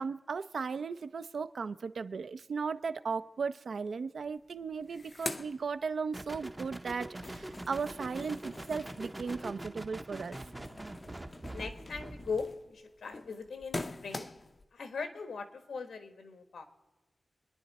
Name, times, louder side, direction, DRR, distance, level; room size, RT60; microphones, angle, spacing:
voice 1, 0.0-10.5, right 5 dB, 60° right, 13 dB, 0.5 m, -36 dB
sound 1, 4.2-4.3 4.6-6.4 6.7-14.6, left 2 dB, 25° left, 0.5 m, -45 dB
sound 2, 6.1-12.5, right 1 dB, 15° right, 0.6 m, -44 dB
voice 2, 11.5-14.3 14.7-16.6, left 5 dB, 90° left, 8 dB, 1.5 m, -40 dB
27.0 x 10.5 x 4.2 m, 1.1 s
wide cardioid pair, 180°, 0 cm